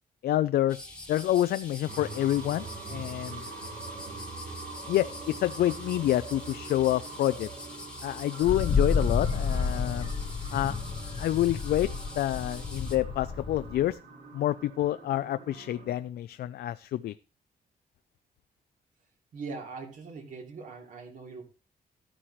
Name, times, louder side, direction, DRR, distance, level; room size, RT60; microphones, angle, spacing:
voice 1, 0.2-0.8 1.1-3.4 4.9-7.5 8.0-10.1 10.5-10.8 11.2-11.9 12.2-14.0 14.3-17.1, left 13 dB, 80° left, 12 dB, 0.5 m, -28 dB
sound 1, 0.7-13.0, left 2 dB, 5° left, 1.7 m, -45 dB
sound 2, 1.9-16.0, right 3 dB, 80° right, 4.4 m, -44 dB
Wind, 8.4-13.9, left 5 dB, 35° left, 0.9 m, -30 dB
voice 2, 19.3-21.4, right 4 dB, 55° right, 3 dB, 2.9 m, -41 dB
13.0 x 10.0 x 3.1 m, 0.31 s
wide cardioid pair, 175°, 16 cm